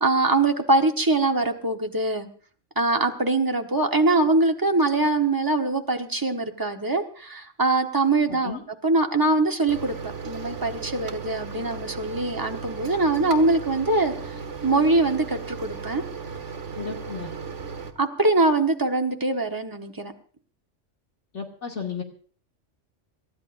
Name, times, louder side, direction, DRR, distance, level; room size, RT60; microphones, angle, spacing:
voice 1, 0.0-2.3 2.7-10.0 10.2-14.1 14.6-16.0 18.0-20.1, right 2 dB, 15° right, 3 dB, 1.3 m, -23 dB
voice 2, 8.3-8.6 16.8-17.3 21.3-22.0, left 5 dB, 70° left, 1 dB, 2.8 m, -33 dB
Microwave oven, 9.7-17.9, right 5 dB, 75° right, 1.7 m, -36 dB
28.0 x 13.5 x 2.6 m, 0.43 s
omnidirectional pair, 1.2 m